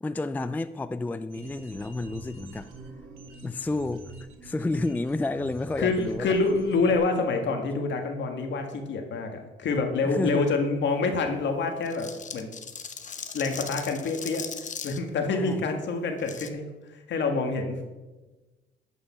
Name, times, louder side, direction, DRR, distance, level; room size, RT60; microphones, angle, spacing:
voice 1, 0.0-2.7 3.4-4.1 4.4-6.3 10.0-10.6 15.3-15.7, left 2 dB, 10° left, 13 dB, 0.4 m, -30 dB
sound 1, 1.3-7.0, right 2 dB, 80° right, 1.9 m, -45 dB
voice 2, 5.8-12.5 13.3-14.5 14.8-16.7 17.1-17.8, left 3 dB, 65° left, 4 dB, 1.8 m, -27 dB
sound 2, 11.8-15.0 16.2-16.5, left 6 dB, 40° left, 0.9 m, -38 dB
11.0 x 5.6 x 5.6 m, 1.2 s
cardioid pair, 90°, 20 cm